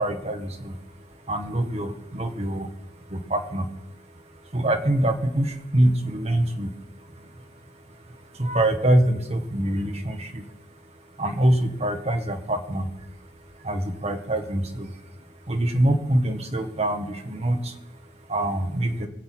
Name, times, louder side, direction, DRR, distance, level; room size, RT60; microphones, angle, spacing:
voice 1, 0.0-19.1, right 1 dB, 35° right, 5 dB, 1.3 m, -26 dB
21.0 x 7.8 x 4.5 m, 0.89 s
head